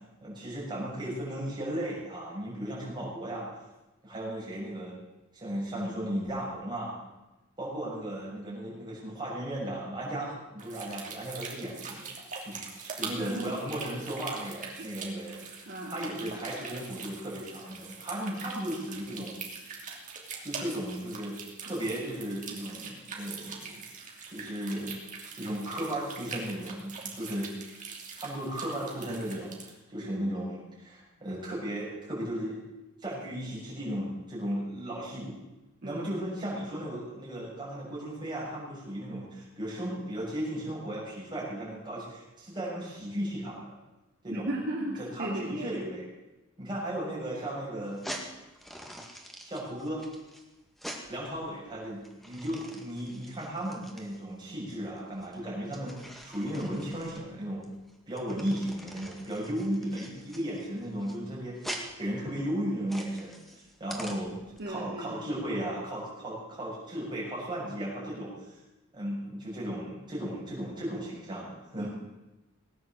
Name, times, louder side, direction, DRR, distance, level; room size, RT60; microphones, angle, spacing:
voice 1, 0.2-3.5 4.0-4.9 5.3-6.9 7.6-12.1 12.5-15.5 15.9-19.4 20.4-23.8 24.3-25.0 25.4-27.5 28.2-32.6 33.0-35.4 35.8-43.8 44.2-44.5 44.9-46.1 46.6-48.0 49.4-50.0 51.1-55.9 56.2-57.6 58.1-63.4 63.8-64.4 64.7-68.3 68.9-71.9, right 1 dB, 20° right, -6 dB, 7.2 m, -35 dB
sound 1, 10.6-29.7, right 5 dB, 35° right, 2.8 m, -43 dB
voice 2, 13.2-13.5 14.8-14.9 15.7-16.3 30.0-30.3 35.8-36.0 44.3-45.7 64.6-65.3 71.8-71.9, right 1 dB, 55° right, -4 dB, 2.7 m, -36 dB
sound 2, 47.8-64.6, equal, ahead, 1.9 m, -45 dB
18.5 x 9.4 x 7.6 m, 1.0 s
head